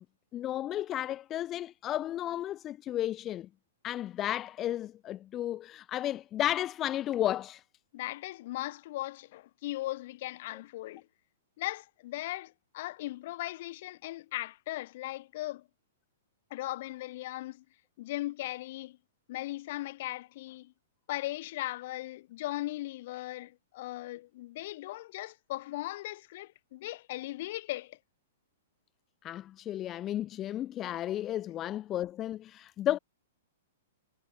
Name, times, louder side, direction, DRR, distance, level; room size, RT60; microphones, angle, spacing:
voice 1, 0.3-3.5 3.8-7.6 29.2-33.0, left 12 dB, 20° left, 1.6 m, -33 dB
voice 2, 7.9-11.1 11.6-15.7 16.5-17.6 18.0-19.0 19.3-20.7 21.1-28.0, left 17 dB, 50° left, 5.8 m, -38 dB
hypercardioid pair, 155°, 0 cm